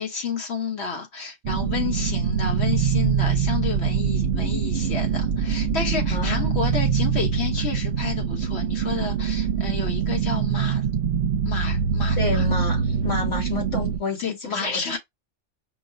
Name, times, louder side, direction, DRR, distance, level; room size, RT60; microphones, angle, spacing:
voice 1, 0.0-10.8 11.4-12.4 14.2-15.0, left 5 dB, 65° left, 1.3 m, -30 dB
sound 1, 1.4-14.0, right 6 dB, 70° right, 0.8 m, -24 dB
voice 2, 6.1-6.6 12.2-15.0, left 3 dB, 90° left, 2.6 m, -30 dB
5.2 x 2.1 x 2.6 m
omnidirectional pair, 1.2 m